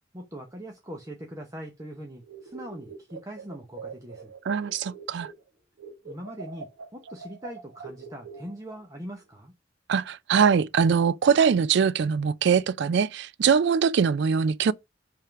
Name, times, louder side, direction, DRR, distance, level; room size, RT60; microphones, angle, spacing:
voice 1, 0.1-4.3 6.0-9.5, equal, 20° right, 0.9 m, -41 dB
sound 1, 2.2-5.5 5.8-8.8, right 5 dB, 90° right, 1.4 m, -44 dB
voice 2, 4.5-5.3 9.9-14.7, right 6 dB, 65° right, 0.3 m, -22 dB
5.6 x 3.7 x 5.8 m
head